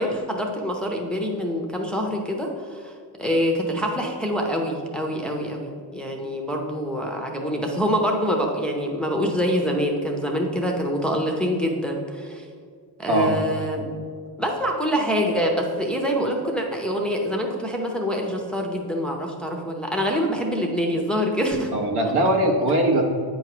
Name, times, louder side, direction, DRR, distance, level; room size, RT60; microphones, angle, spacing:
voice 1, 0.0-2.9 3.2-12.4 13.0-13.9 14.4-21.7, equal, ahead, 0 dB, 0.6 m, -25 dB
voice 2, 13.1-13.4 21.7-23.0, right 1 dB, 70° right, 0 dB, 1.3 m, -20 dB
8.5 x 3.1 x 5.9 m, 2.1 s
cardioid pair, 120°, 40 cm